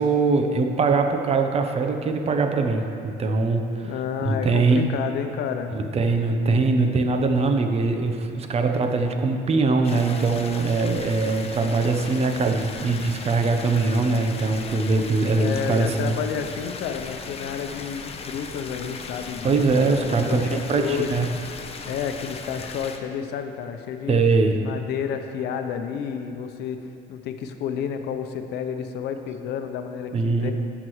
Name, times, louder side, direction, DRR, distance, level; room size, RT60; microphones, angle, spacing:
voice 1, 0.0-3.9 4.2-4.9 5.7-16.1 19.4-21.3 24.1-24.6 30.1-30.5, right 3 dB, 35° right, 5 dB, 0.8 m, -22 dB
voice 2, 3.8-5.7 15.4-21.3 21.8-24.2 24.6-26.8 27.1-30.5, left 7 dB, 80° left, 7 dB, 0.7 m, -30 dB
sound 1, 9.8-23.0, left 5 dB, 35° left, 0.7 m, -37 dB
16.0 x 6.0 x 3.2 m, 2.7 s
cardioid pair, 110°, 17 cm